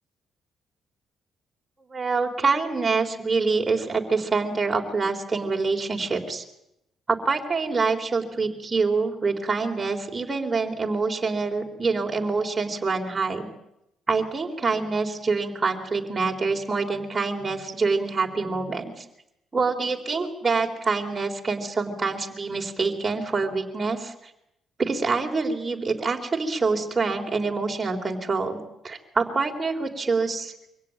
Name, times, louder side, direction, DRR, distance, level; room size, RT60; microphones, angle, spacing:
voice 1, 1.9-6.4 7.1-13.5 14.1-19.0 19.5-24.1 24.8-30.5, right 4 dB, 25° right, 1 dB, 4.0 m, -26 dB
24.5 x 17.0 x 9.5 m, 0.85 s
cardioid pair, 90°, 0 cm